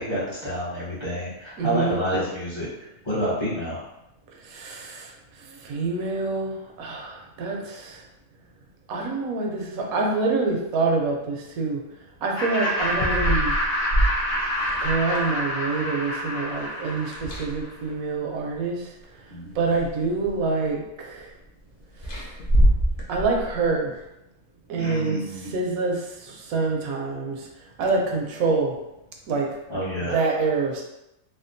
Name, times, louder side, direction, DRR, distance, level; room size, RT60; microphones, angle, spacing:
voice 1, 0.0-3.8 19.3-19.6 24.8-25.5 29.7-30.2, equal, 25° left, -9 dB, 0.8 m, -29 dB
voice 2, 1.6-2.0 4.4-5.1 5.5-8.0 8.9-11.8 12.2-13.5 14.8-18.8 19.5-21.3 23.1-23.9 24.7-27.5 27.8-28.8 29.3-29.5 30.1-30.8, right 3 dB, 80° right, 1 dB, 1.1 m, -26 dB
Laughter, 12.4-17.7, equal, 70° left, 1.3 m, -27 dB
sound 1, 12.8-15.3 17.0-17.9 19.0-19.1 19.6-20.4 22.0-23.7, equal, 55° left, 0.6 m, -25 dB
3.5 x 2.3 x 2.6 m, 0.89 s
omnidirectional pair, 1.5 m